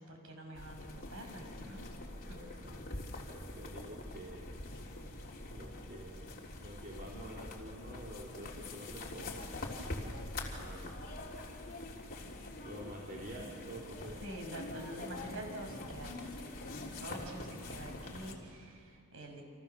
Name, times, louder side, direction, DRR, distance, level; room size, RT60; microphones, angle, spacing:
voice 1, 0.0-1.8 2.3-2.4 14.2-16.5 17.0-19.4, right 1 dB, 65° right, 2 dB, 6.2 m, -46 dB
sound 1, 0.5-18.3, left 2 dB, 45° left, 3.4 m, -45 dB
voice 2, 2.3-4.6 5.5-9.8 10.6-11.1 12.6-14.2, equal, 45° right, -4 dB, 3.6 m, -48 dB
30.0 x 27.5 x 7.0 m, 2.3 s
head